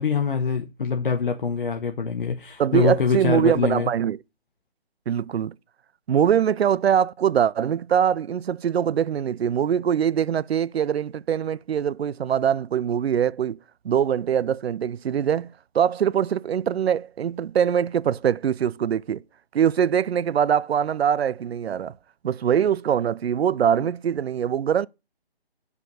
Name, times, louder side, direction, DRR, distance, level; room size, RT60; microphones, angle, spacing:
voice 1, 0.0-3.9, left 5 dB, 60° left, 1.1 m, -24 dB
voice 2, 2.6-4.2 5.1-5.5 6.1-13.6 13.8-19.2 19.5-21.9 22.2-24.9, right 8 dB, 85° right, 0.5 m, -23 dB
8.2 x 4.9 x 5.3 m
hypercardioid pair, 165°, 31 cm